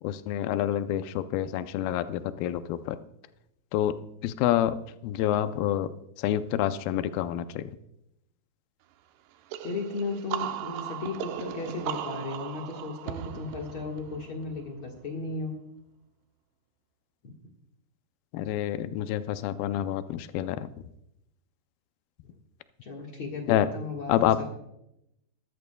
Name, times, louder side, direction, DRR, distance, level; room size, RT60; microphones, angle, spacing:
voice 1, 0.0-3.0 3.7-4.8 5.0-7.8 18.3-20.7 23.5-23.7 24.1-24.4, left 12 dB, 80° left, 11 dB, 2.2 m, -28 dB
sound 1, 9.5-15.1, right 11 dB, 85° right, 2.8 m, -37 dB
voice 2, 9.6-15.6 22.8-24.5, left 3 dB, 55° left, 0 dB, 1.5 m, -35 dB
20.5 x 13.5 x 2.2 m, 0.84 s
omnidirectional pair, 4.7 m